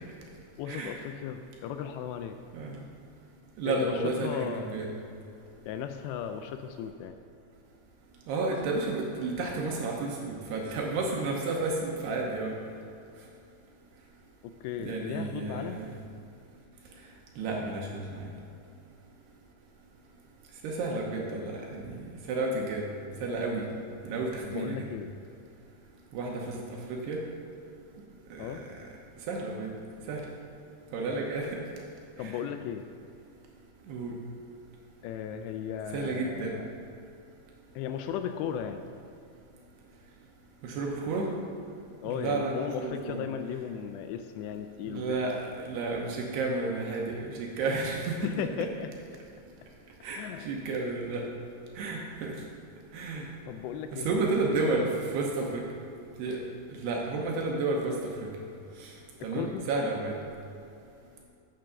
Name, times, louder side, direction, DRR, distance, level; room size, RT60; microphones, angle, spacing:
voice 1, 0.6-2.4 3.6-4.8 5.7-7.2 14.4-15.9 20.9-21.8 24.4-25.1 28.4-28.7 32.2-32.9 35.0-36.7 37.8-38.9 42.0-45.2 48.1-48.9 50.2-50.5 53.5-54.2 54.5-54.8 59.2-59.6, left 8 dB, 85° left, 7 dB, 2.6 m, -36 dB
voice 2, 3.6-4.9 8.3-12.5 14.8-15.9 17.4-18.2 20.6-21.9 22.3-22.9 23.2-23.6 24.0-24.9 26.1-26.6 27.1-27.2 28.3-28.6 29.3-29.7 30.1-30.2 30.9-31.6 32.2-32.4 33.9-34.1 35.9-36.5 40.6-41.3 42.1-43.2 44.8-48.2 50.0-50.2 50.5-51.2 51.8-52.4 52.9-53.3 53.9-54.9 55.1-55.6 56.2-56.4 56.7-58.3 58.8-58.9 59.2-60.2, right 3 dB, 75° right, -1 dB, 2.8 m, -31 dB
9.3 x 6.8 x 6.8 m, 2.5 s
omnidirectional pair, 5.3 m